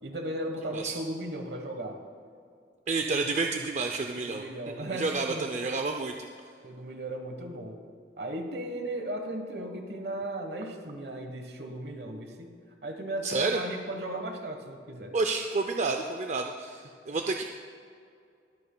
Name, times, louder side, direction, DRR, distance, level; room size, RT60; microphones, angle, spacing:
voice 1, 0.0-2.0 4.2-5.5 6.6-7.8 8.2-12.5 12.8-15.1, right 1 dB, 65° right, 5 dB, 1.2 m, -36 dB
voice 2, 2.9-4.4 4.9-6.1 13.2-13.6 15.1-17.4, right 3 dB, 40° right, 4 dB, 0.4 m, -29 dB
21.5 x 8.4 x 2.2 m, 2.3 s
head